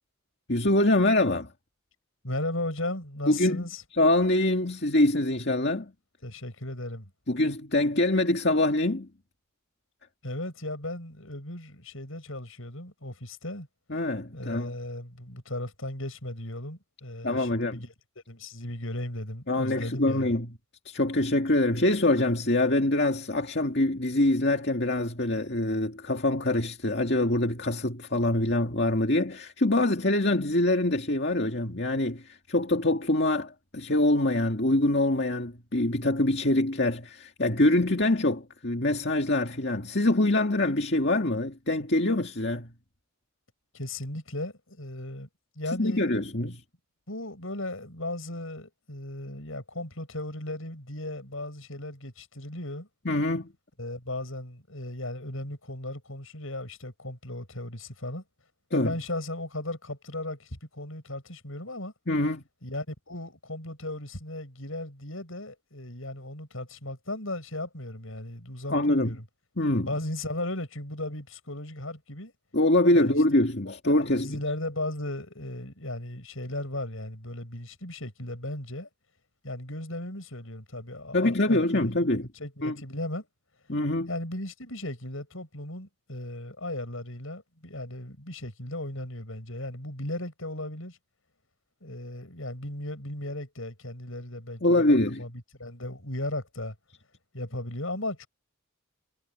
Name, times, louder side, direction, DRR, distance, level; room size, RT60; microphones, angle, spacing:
voice 1, 0.5-1.5 3.3-3.7 3.9-5.9 7.3-9.1 13.9-14.7 17.2-17.8 19.5-20.5 20.9-42.7 45.8-46.6 53.1-53.5 58.7-58.9 62.1-62.4 68.7-69.2 69.6-69.9 72.5-74.4 81.1-82.3 82.6-82.7 83.7-84.1 94.6-95.2, left 1 dB, 50° left, 2.2 m, -24 dB
voice 2, 2.2-3.8 6.2-7.1 10.2-13.7 14.3-17.9 18.3-20.3 43.7-45.3 45.6-46.1 47.1-52.9 53.8-58.2 58.7-61.9 62.6-69.2 69.9-72.3 72.9-73.1 73.8-78.9 79.4-83.3 84.1-91.0 91.8-95.3 95.6-96.7 97.3-98.3, left 1 dB, 65° left, 7.7 m, -36 dB
head